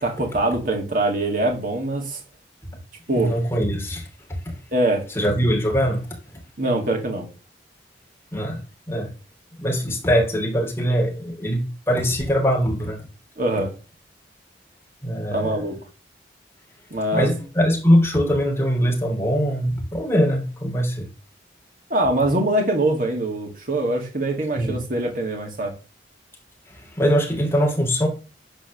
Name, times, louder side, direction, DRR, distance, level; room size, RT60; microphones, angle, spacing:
voice 1, 0.0-2.2 3.1-3.3 4.7-5.1 6.6-7.3 13.4-13.7 15.3-15.8 16.9-17.3 21.9-25.7, right 1 dB, 50° right, 2.5 m, -23 dB
voice 2, 3.2-4.6 5.1-6.1 8.3-8.6 8.9-9.1 9.6-13.1 15.0-15.6 16.9-21.1 24.5-24.8 26.7-28.1, equal, 15° left, 3.0 m, -22 dB
10.5 x 4.4 x 6.7 m
head